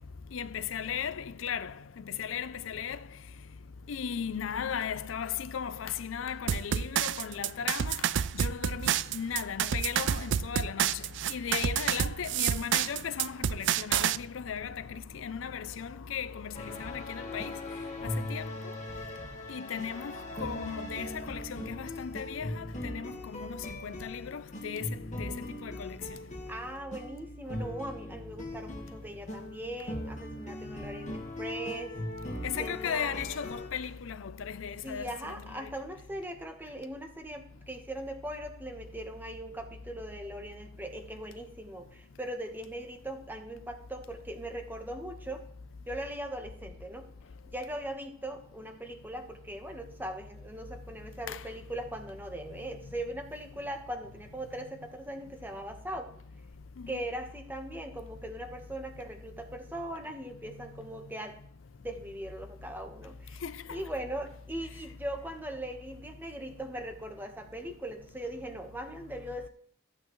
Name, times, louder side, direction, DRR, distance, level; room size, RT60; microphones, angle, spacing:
voice 1, 0.3-3.0 3.9-8.0 8.3-11.0 11.3-17.6 18.0-18.5 19.5-26.0 32.4-35.7 51.3-51.4 56.8-57.0 63.4-63.6, left 7 dB, 85° left, 0.5 m, -36 dB
sound 1, 6.5-14.2, right 9 dB, 65° right, 0.4 m, -29 dB
sound 2, 16.5-33.7, left 1 dB, 40° left, 1.6 m, -40 dB
voice 2, 26.5-32.0 32.6-33.2 34.8-45.4 45.9-47.1 47.5-56.1 56.9-61.4 61.8-63.4 63.7-69.5, right 1 dB, 10° right, 1.2 m, -40 dB
14.5 x 8.4 x 3.1 m
head